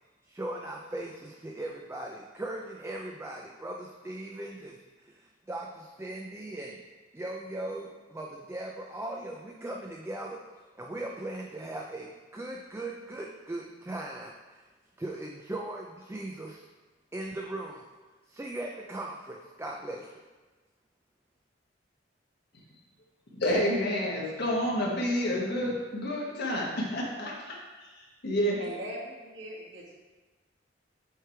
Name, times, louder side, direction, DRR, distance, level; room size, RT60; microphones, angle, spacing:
voice 1, 0.2-6.8 7.1-10.4 10.7-14.6 15.0-16.6 17.1-17.9 18.3-20.2, right 1 dB, 15° right, 0 dB, 0.4 m, -39 dB
voice 2, 23.3-27.9 28.2-28.6, equal, 60° left, -3 dB, 1.5 m, -29 dB
voice 3, 28.6-30.0, equal, 70° right, -4 dB, 1.6 m, -40 dB
7.8 x 3.3 x 4.5 m, 1.3 s
head